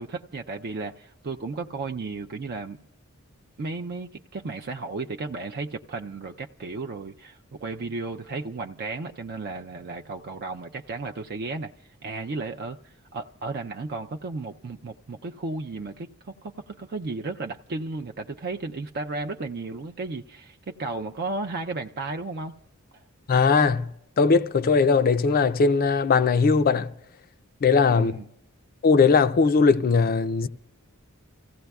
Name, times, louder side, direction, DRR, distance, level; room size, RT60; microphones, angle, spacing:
voice 1, 0.0-2.8 3.6-22.6 22.9-23.0 27.9-28.2, right 3 dB, 45° right, 0.4 m, -34 dB
voice 2, 23.3-23.9 24.2-26.9 27.6-28.2 28.8-30.5, left 4 dB, 45° left, 0.4 m, -19 dB
29.5 x 16.0 x 2.3 m
head